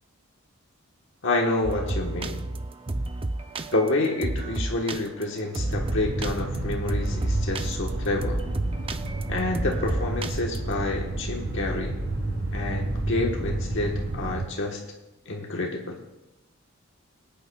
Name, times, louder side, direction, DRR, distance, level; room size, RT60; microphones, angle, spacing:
voice 1, 1.2-2.4 3.7-8.4 9.3-12.0 12.5-14.8 15.3-16.0, left 2 dB, 60° left, 0 dB, 1.3 m, -28 dB
sound 1, 1.6-10.7, right 2 dB, 25° right, 0.4 m, -31 dB
sound 2, 5.7-14.4, right 2 dB, 45° right, 3.0 m, -30 dB
22.5 x 9.2 x 2.3 m, 1.0 s
head